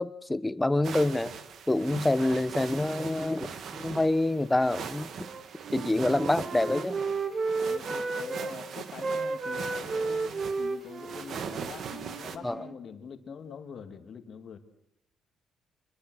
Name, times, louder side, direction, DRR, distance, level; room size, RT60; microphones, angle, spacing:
voice 1, 0.0-1.3 1.7-5.3 5.7-6.9 12.4-12.6, left 2 dB, 10° left, 15 dB, 0.9 m, -27 dB
sound 1, 0.8-12.4, right 7 dB, 50° right, 1.8 m, -41 dB
Wind instrument woodwind instrument, 5.2-8.5 8.9-12.8, right 3 dB, 30° right, 1.7 m, -33 dB
voice 2, 7.6-14.6, left 6 dB, 45° left, 7 dB, 2.4 m, -45 dB
27.0 x 22.5 x 6.4 m, 0.83 s
cardioid pair, 145°, 0 cm